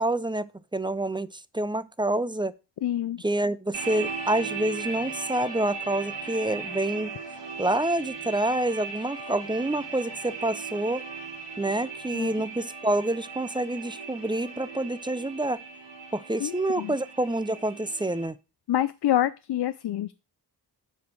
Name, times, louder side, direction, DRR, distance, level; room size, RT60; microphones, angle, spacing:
voice 1, 0.0-2.5 3.2-7.2 7.6-11.0 11.6-15.6 16.1-18.4, right 1 dB, 10° right, 0.4 m, -27 dB
voice 2, 2.8-3.2 12.1-12.3 16.4-16.9 18.7-20.1, left 12 dB, 65° left, 0.5 m, -27 dB
sound 1, 3.7-18.3, right 5 dB, 85° right, 3.1 m, -38 dB
8.2 x 5.0 x 6.1 m
wide cardioid pair, 95°, 42 cm